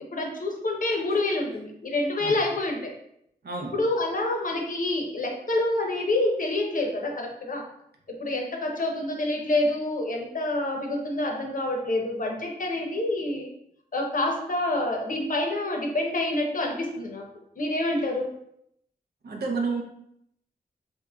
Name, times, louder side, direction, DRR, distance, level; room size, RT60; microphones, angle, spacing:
voice 1, 0.1-2.9 3.7-7.7 8.1-13.5 13.9-17.2 17.6-18.3, left 2 dB, 55° left, 1 dB, 0.7 m, -27 dB
voice 2, 0.9-1.4 2.2-2.4 3.4-3.8 19.2-19.8, right 4 dB, 75° right, 1 dB, 0.6 m, -31 dB
3.5 x 3.0 x 2.2 m, 0.75 s
wide cardioid pair, 80°, 16 cm